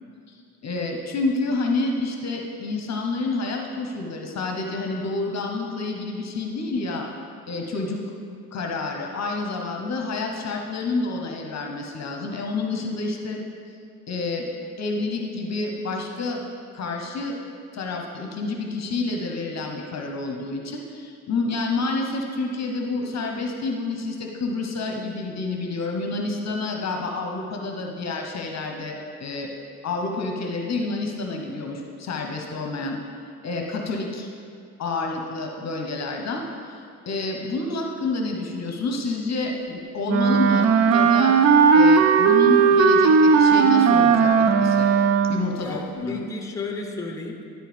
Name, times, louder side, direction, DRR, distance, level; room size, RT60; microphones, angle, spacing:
voice 1, 0.6-7.1 7.5-8.0 8.5-13.4 14.1-14.5 14.8-16.4 16.7-17.4 17.7-29.5 29.8-33.0 33.4-34.3 34.8-41.4 41.7-44.9 45.3-46.2, left 3 dB, 35° left, 2 dB, 1.0 m, -28 dB
Wind instrument woodwind instrument, 40.1-45.6, right 5 dB, 35° right, 0.5 m, -17 dB
voice 2, 45.6-47.4, left 3 dB, 5° left, 2 dB, 0.9 m, -33 dB
12.0 x 4.5 x 3.4 m, 2.5 s
hypercardioid pair, 55°, 45 cm